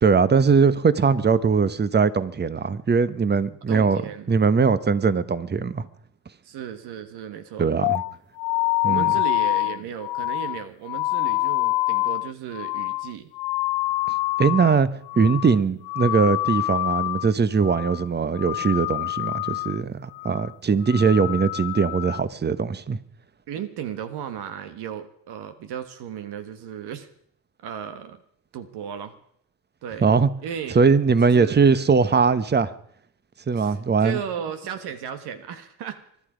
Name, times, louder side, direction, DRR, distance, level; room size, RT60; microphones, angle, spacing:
voice 1, 0.0-4.0 4.3-5.9 7.6-8.0 8.8-9.1 14.4-14.9 15.2-23.0 30.0-30.3 30.7-32.7 33.5-34.2, right 5 dB, 25° right, 15 dB, 1.1 m, -20 dB
voice 2, 3.7-4.3 6.4-7.7 8.8-13.3 23.5-27.1 27.6-28.2 28.5-29.1 29.8-30.1 30.4-30.8 31.3-31.9 33.5-36.0, right 8 dB, 75° right, 9 dB, 1.5 m, -35 dB
sound 1, 7.8-14.8 15.1-15.6 15.8-17.3 17.6-18.0 18.3-19.8 20.1-20.5 20.8-22.2, left 20 dB, 70° left, 0.5 m, -26 dB
23.5 x 12.0 x 5.1 m, 0.69 s
cardioid pair, 85°, 40 cm